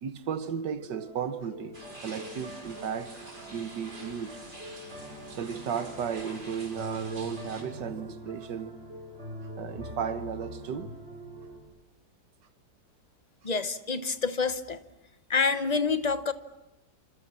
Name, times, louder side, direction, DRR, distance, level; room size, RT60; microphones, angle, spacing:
voice 1, 0.0-3.2 3.5-4.4 5.3-8.8 9.6-10.9, right 7 dB, 90° right, 1.8 m, -34 dB
sound 1, 0.8-11.6, equal, 35° right, 5.6 m, -44 dB
sound 2, 1.7-7.6, right 1 dB, 70° right, 5.9 m, -46 dB
voice 2, 13.4-14.8 15.3-16.3, left 5 dB, 30° left, 0.9 m, -27 dB
28.5 x 26.5 x 7.4 m
omnidirectional pair, 1.8 m